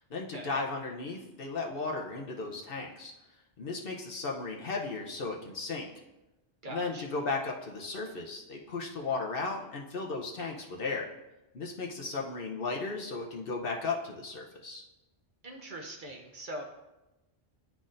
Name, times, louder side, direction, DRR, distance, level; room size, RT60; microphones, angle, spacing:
voice 1, 0.1-3.1 3.6-5.9 6.7-11.1 11.5-14.8, left 3 dB, 55° left, 0 dB, 0.9 m, -35 dB
voice 2, 6.6-7.0 15.4-16.6, right 1 dB, 50° right, 2 dB, 0.9 m, -42 dB
11.5 x 4.1 x 2.5 m, 0.99 s
omnidirectional pair, 1.2 m